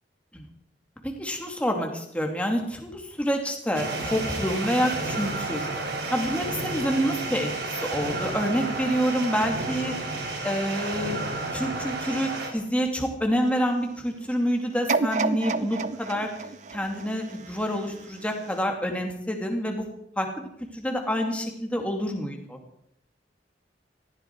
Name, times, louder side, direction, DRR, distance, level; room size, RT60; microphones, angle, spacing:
voice 1, 1.0-5.7 6.1-7.5 7.8-9.9 10.4-11.2 11.5-16.3 16.7-19.8 20.2-20.4 20.7-22.6, equal, 10° left, 2 dB, 2.5 m, -27 dB
sound 1, 3.7-12.5, right 2 dB, 70° right, 3.5 m, -31 dB
sound 2, 14.9-18.0 18.5-18.6, right 4 dB, 45° right, 0.7 m, -29 dB
19.5 x 15.0 x 4.6 m, 0.72 s
head